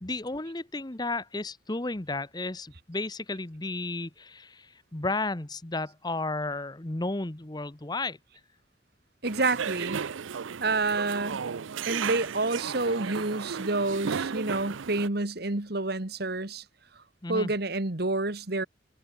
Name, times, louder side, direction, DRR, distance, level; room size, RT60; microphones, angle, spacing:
voice 1, 0.0-8.2 17.2-17.5, left 2 dB, 20° left, 1.0 m, -33 dB
voice 2, 9.2-10.0 10.6-11.4 11.9-16.6 17.3-18.7, right 2 dB, 55° right, 1.8 m, -28 dB
sound 1, 9.2-15.1, right 6 dB, 85° right, 0.6 m, -34 dB
head